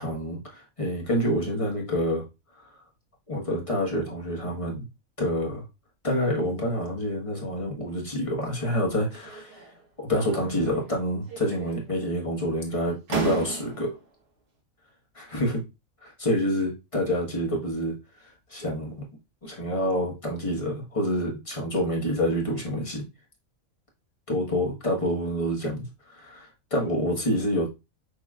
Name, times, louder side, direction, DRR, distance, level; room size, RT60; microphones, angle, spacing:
voice 1, 0.0-2.3 2.5-2.8 3.3-4.9 5.2-5.6 6.0-9.7 10.0-14.0 15.1-15.6 16.0-19.0 19.4-23.1 24.3-27.7, equal, 25° left, 1.3 m, -27 dB
sound 1, 9.2-9.8 10.2-11.0 11.3-12.0 12.7-12.8 13.1-14.0, right 4 dB, 60° right, 1.7 m, -35 dB
6.4 x 3.1 x 2.4 m
omnidirectional pair, 1.4 m